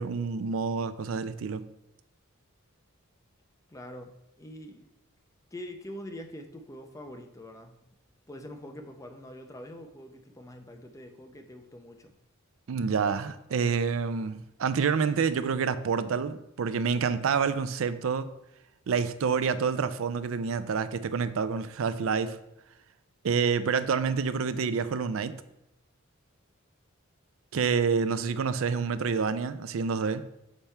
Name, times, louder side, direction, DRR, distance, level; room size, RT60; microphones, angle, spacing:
voice 1, 0.0-1.7 12.7-18.3 18.9-22.4 23.2-25.4 27.5-30.2, right 5 dB, 70° right, 0.4 m, -28 dB
voice 2, 3.7-4.9 5.5-7.8 8.3-12.1, left 1 dB, 15° left, 0.6 m, -44 dB
7.1 x 3.4 x 4.3 m
head